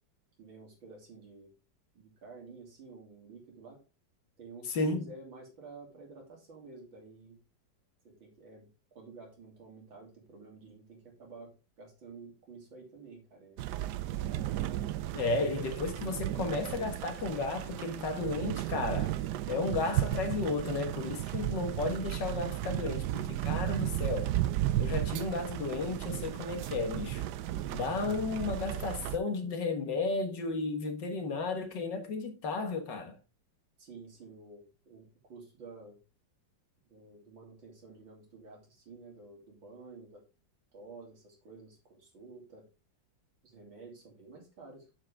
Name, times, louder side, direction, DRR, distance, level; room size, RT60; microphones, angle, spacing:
voice 1, 0.4-1.5 1.9-3.8 4.4-7.4 8.1-13.6 14.0-14.5 33.8-36.0 36.9-40.2 40.7-42.7 43.4-44.9, right 3 dB, 90° right, 3.6 m, -51 dB
voice 2, 4.7-5.1 15.1-19.2 19.5-24.3 24.8-27.2 27.7-33.2, left 3 dB, 70° left, 2.0 m, -33 dB
sound 1, 13.6-29.2, right 13 dB, 70° right, 1.1 m, -34 dB
7.6 x 7.4 x 3.4 m
omnidirectional pair, 2.0 m